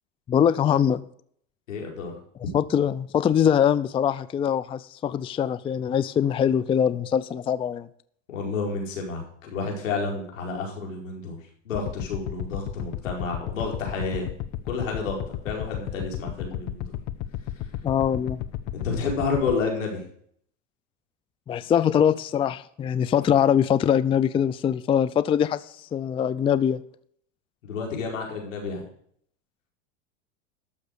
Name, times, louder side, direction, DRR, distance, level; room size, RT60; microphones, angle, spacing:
voice 1, 0.3-1.0 2.5-7.9 17.8-18.4 21.5-25.6 25.9-26.8, left 8 dB, 15° left, 16 dB, 0.4 m, -22 dB
voice 2, 1.7-2.2 8.3-14.3 14.6-16.9 18.8-20.0 27.6-28.8, left 4 dB, 90° left, 1 dB, 4.8 m, -30 dB
sound 1, 11.7-19.6, left 12 dB, 45° left, 1.0 m, -32 dB
13.0 x 6.5 x 6.5 m, 0.63 s
supercardioid pair, 110°, 38 cm